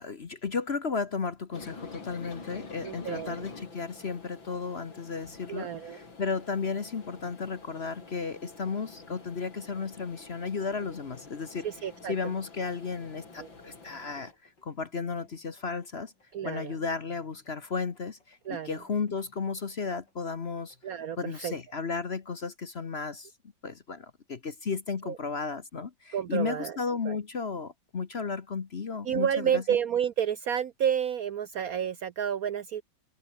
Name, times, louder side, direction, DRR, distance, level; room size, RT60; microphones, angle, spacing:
voice 1, 0.0-11.7 12.1-16.1 16.4-20.8 21.2-23.3 23.6-29.6, left 5 dB, 40° left, 1.2 m, -34 dB
sound 1, 1.5-14.3, left 4 dB, 90° left, 4.9 m, -48 dB
voice 2, 2.8-3.5 5.5-6.0 11.6-12.2 13.4-13.5 16.3-16.8 18.5-18.8 20.8-21.5 25.0-25.2 26.1-26.8 27.1-27.2 29.0-32.8, right 9 dB, 60° right, 1.0 m, -30 dB
sound 2, 5.3-22.2, left 3 dB, 65° left, 5.8 m, -67 dB
omnidirectional pair, 2.1 m